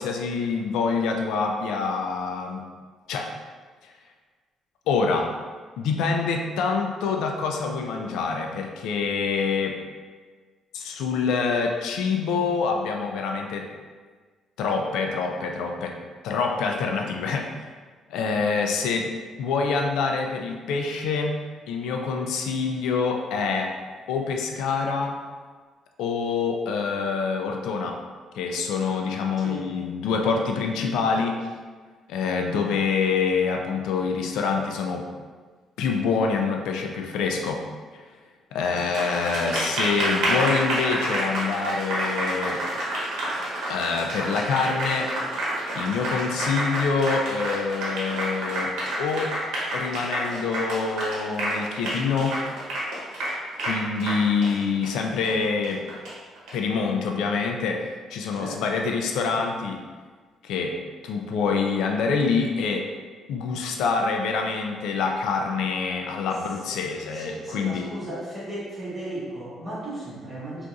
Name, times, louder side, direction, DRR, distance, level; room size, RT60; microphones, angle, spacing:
voice 1, 0.0-2.6 3.1-3.3 3.8-3.9 4.9-5.3 5.8-9.8 10.7-13.7 14.6-16.0 16.2-17.5 18.1-19.1 19.4-21.4 21.7-23.8 24.1-25.2 26.0-28.0 28.3-31.4 32.1-35.1 35.8-37.6 37.9-38.0 38.5-42.6 43.7-45.1 45.8-49.3 49.7-52.4 53.7-55.8 56.5-59.8 60.4-60.8 61.0-62.9 63.3-67.9, left 5 dB, 90° left, 2 dB, 0.3 m, -26 dB
voice 2, 29.4-29.7 58.3-58.6 66.7-66.8 67.1-70.7, right 1 dB, 20° right, -11 dB, 1.5 m, -35 dB
Applause, 38.8-56.5, right 1 dB, 85° right, 0.9 m, -29 dB
3.9 x 2.4 x 2.4 m, 1.5 s
cardioid pair, 140°, 0 cm